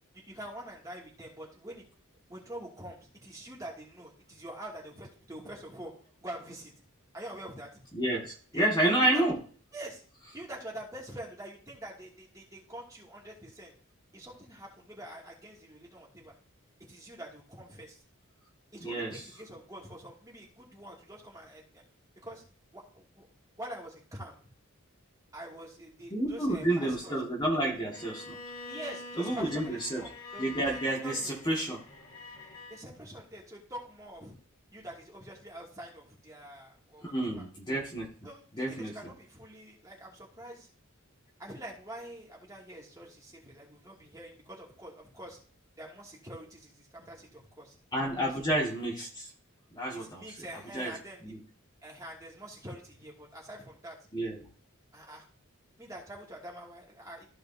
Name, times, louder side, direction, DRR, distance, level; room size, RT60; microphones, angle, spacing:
voice 1, 0.3-1.8 2.3-5.9 6.2-6.7 7.1-7.7 8.5-9.2 9.7-10.0 10.3-13.7 14.1-16.3 16.9-18.0 18.7-21.8 22.2-22.4 22.7-23.3 23.6-24.4 25.3-27.2 28.7-31.3 32.7-34.3 34.7-37.4 38.2-40.7 41.4-45.4 45.8-47.7 48.0-48.3 48.6-48.7 49.9-51.3 51.8-54.0 54.9-55.2 55.8-57.2, right 1 dB, 15° right, -3 dB, 2.6 m, -45 dB
voice 2, 7.9-9.4 18.8-19.2 26.1-28.4 29.2-30.1 30.4-31.8 37.0-38.1 38.5-39.1 47.9-49.3 49.7-50.2 50.7-50.9 51.2-51.4 54.1-54.5, right 1 dB, 20° left, -3 dB, 2.1 m, -30 dB
Bowed string instrument, 27.9-32.8, left 3 dB, 60° left, 2.5 m, -46 dB
15.0 x 5.1 x 2.8 m, 0.43 s
head